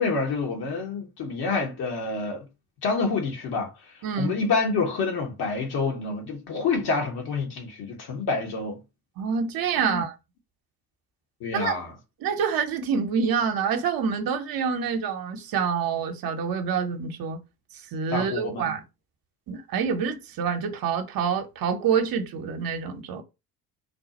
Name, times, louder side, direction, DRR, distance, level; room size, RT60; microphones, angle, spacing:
voice 1, 0.0-2.5 2.8-3.7 4.2-8.8 9.8-10.0 11.4-11.9 18.1-18.7, left 4 dB, 55° left, 1.5 m, -27 dB
voice 2, 4.0-4.4 9.2-10.1 11.5-11.7 12.2-17.4 17.9-18.8 19.5-23.2, right 6 dB, 50° right, 0.9 m, -27 dB
3.3 x 2.4 x 4.1 m
hypercardioid pair, 65°, 46 cm